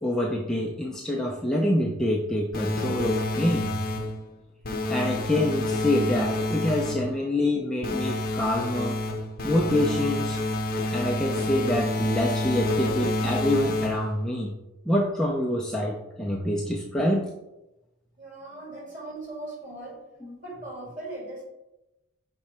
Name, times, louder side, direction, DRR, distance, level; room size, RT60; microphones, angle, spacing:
voice 1, 0.0-3.8 4.9-9.0 9.4-10.4 10.9-14.5 14.9-17.3 18.7-18.8 20.2-20.4, left 1 dB, 5° left, -2 dB, 0.4 m, -26 dB
sound 1, 2.5-4.2 4.6-7.1 7.8-14.2, left 1 dB, 40° left, 0.7 m, -28 dB
voice 2, 18.2-20.0 20.4-21.4, right 2 dB, 35° right, -2 dB, 2.1 m, -39 dB
5.9 x 4.4 x 4.3 m, 0.95 s
head